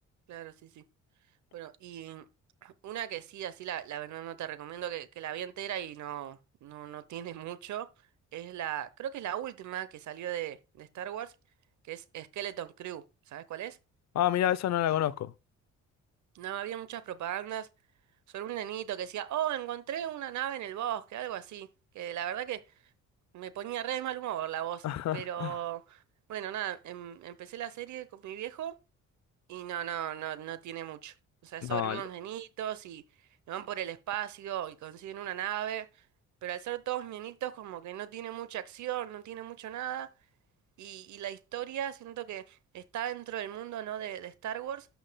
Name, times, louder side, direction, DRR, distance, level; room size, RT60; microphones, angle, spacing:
voice 1, 0.3-0.8 1.5-2.3 2.6-7.9 8.3-11.3 11.8-13.8 16.3-17.7 18.3-21.7 21.9-22.6 23.3-24.9 25.1-26.0 26.3-28.7 29.5-31.1 31.4-33.0 33.5-36.0 36.4-40.1 40.8-44.9, right 11 dB, 70° right, 0.9 m, -37 dB
voice 2, 14.2-15.3 24.8-25.5 31.6-32.0, left 11 dB, 60° left, 0.7 m, -29 dB
13.5 x 5.7 x 2.2 m
cardioid pair, 90°, 30 cm